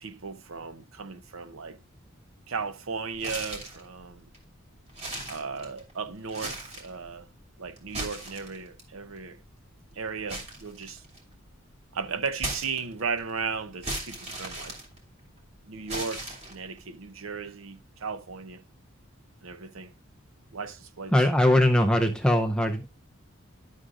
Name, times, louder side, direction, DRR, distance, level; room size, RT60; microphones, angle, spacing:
voice 1, 0.0-1.8 2.5-4.3 5.3-7.3 7.6-9.4 10.0-11.0 11.9-14.8 15.6-18.6 19.4-19.9 20.5-21.1, right 5 dB, 75° right, 0.7 m, -36 dB
sound 1, 3.2-3.8 4.3-4.4 4.9-5.9 6.3-6.9 7.8-8.8 10.3-11.3 12.4-13.2 13.8-15.4 15.9-16.8, right 1 dB, 30° right, 2.6 m, -36 dB
voice 2, 21.1-22.9, left 1 dB, 5° left, 0.6 m, -21 dB
11.5 x 6.2 x 2.5 m
head